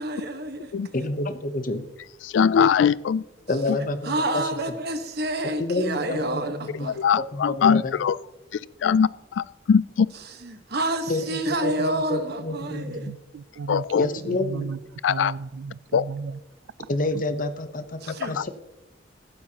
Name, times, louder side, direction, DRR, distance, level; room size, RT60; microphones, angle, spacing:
voice 1, 0.0-0.7 4.0-7.0 10.4-13.1 18.0-18.5, right 1 dB, 55° right, 7 dB, 1.3 m, -28 dB
voice 2, 0.9-1.8 3.5-4.5 5.6-6.9 7.2-8.0 11.1-13.1 13.9-14.7 16.9-18.5, left 2 dB, 45° left, 10 dB, 0.9 m, -29 dB
voice 3, 2.2-3.2 6.9-8.2 8.8-10.1 13.7-14.1 15.0-15.3 15.9-16.1 18.4-18.5, left 7 dB, 70° left, 20 dB, 0.3 m, -21 dB
voice 4, 12.7-14.8 15.1-16.4, right 5 dB, 75° right, 18 dB, 0.4 m, -35 dB
15.0 x 12.5 x 2.9 m, 0.99 s
head